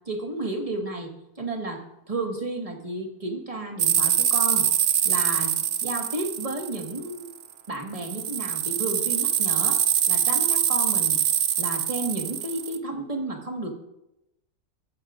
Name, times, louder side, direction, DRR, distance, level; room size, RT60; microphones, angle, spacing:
voice 1, 0.1-4.7 5.0-7.3 7.7-11.2 11.6-13.7, right 2 dB, 20° right, 2 dB, 1.6 m, -32 dB
sound 1, 3.8-7.4 8.0-12.8, right 9 dB, 90° right, 0.5 m, -24 dB
17.5 x 14.5 x 2.5 m, 0.88 s
omnidirectional pair, 1.8 m